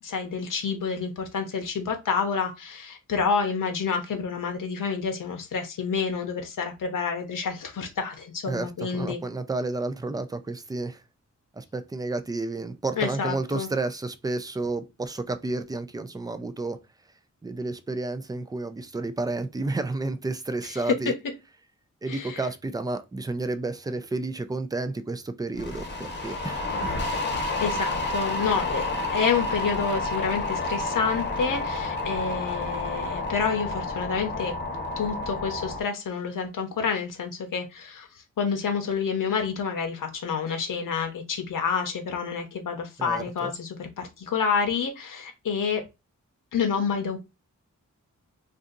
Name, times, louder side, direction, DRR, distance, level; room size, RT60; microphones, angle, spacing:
voice 1, 0.0-9.2 13.0-13.7 20.9-21.0 22.1-22.4 27.3-34.5 35.0-38.1 38.4-45.9 46.5-47.2, left 6 dB, 90° left, 0.7 m, -28 dB
voice 2, 8.5-11.0 11.5-16.8 17.4-21.1 22.0-26.9 43.0-43.5, right 2 dB, 15° right, 0.3 m, -31 dB
sound 1, 25.6-35.8, left 2 dB, 35° left, 0.8 m, -30 dB
2.6 x 2.4 x 3.8 m
wide cardioid pair, 150°, 31 cm